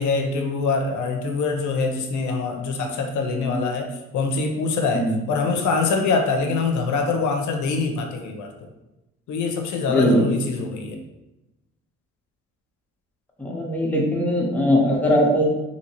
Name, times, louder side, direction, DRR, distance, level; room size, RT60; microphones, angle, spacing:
voice 1, 0.0-8.5 9.3-11.0, left 4 dB, 75° left, 3 dB, 0.5 m, -24 dB
voice 2, 9.9-10.4 13.4-15.4, equal, 5° left, -2 dB, 0.7 m, -20 dB
2.8 x 2.8 x 2.8 m, 0.99 s
cardioid pair, 90°, 30 cm